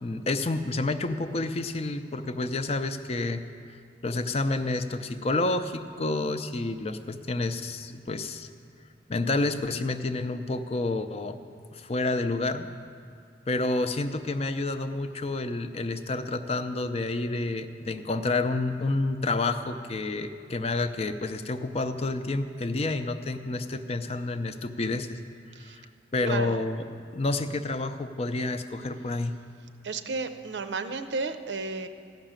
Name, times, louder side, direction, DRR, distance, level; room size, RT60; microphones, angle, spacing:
voice 1, 0.0-3.4 4.0-8.5 9.1-11.4 11.7-12.7 13.5-25.2 25.6-26.8 27.1-29.4, left 2 dB, 35° left, 9 dB, 0.5 m, -29 dB
voice 2, 26.2-26.6 29.8-31.9, right 4 dB, 85° right, 8 dB, 0.7 m, -32 dB
14.5 x 6.0 x 8.9 m, 2.3 s
head